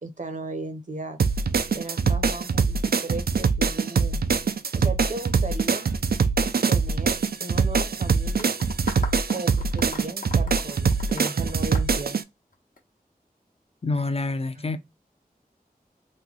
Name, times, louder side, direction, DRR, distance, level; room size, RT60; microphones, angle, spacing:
voice 1, 0.0-1.2 1.7-4.2 4.7-5.9 6.7-8.6 9.3-12.2 14.5-14.7, right 2 dB, 55° right, 0.7 m, -36 dB
sound 1, 1.2-12.2, right 5 dB, 80° right, 0.4 m, -23 dB
sound 2, 8.4-12.8, left 3 dB, 60° left, 1.1 m, -39 dB
voice 2, 13.8-14.8, left 3 dB, 40° left, 0.5 m, -27 dB
3.1 x 2.2 x 3.8 m
wide cardioid pair, 45°, 16 cm